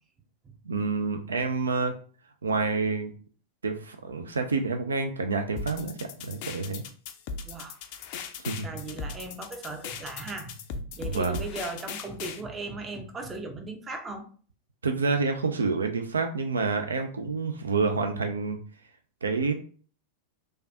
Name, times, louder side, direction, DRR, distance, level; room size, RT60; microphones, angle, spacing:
voice 1, 0.6-1.9 2.4-3.1 3.6-6.8 8.4-8.7 11.0-11.4 14.8-18.6 19.2-19.5, right 4 dB, 75° right, 0.3 m, -28 dB
sound 1, 5.6-12.4, left 5 dB, 45° left, 0.4 m, -38 dB
voice 2, 7.4-7.8 8.6-14.3, right 3 dB, 20° right, 0.6 m, -38 dB
3.2 x 2.3 x 2.7 m
figure-of-eight pair, 90°, 0 cm